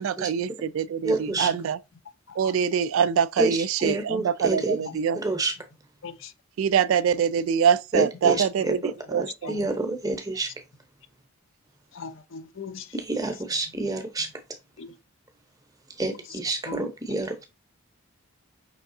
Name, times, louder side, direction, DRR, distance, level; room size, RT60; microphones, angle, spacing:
voice 1, 0.0-1.8 2.3-5.2 6.6-9.6, right 7 dB, 65° right, 0.3 m, -24 dB
voice 2, 1.0-1.5 3.4-4.8 5.2-5.5 7.9-8.4 8.8-10.5 12.9-14.3 16.0-17.4, right 2 dB, 15° right, 0.8 m, -28 dB
voice 3, 11.9-12.9 14.8-15.0 16.7-16.9, left 4 dB, 60° left, 0.6 m, -39 dB
5.5 x 3.5 x 2.7 m
head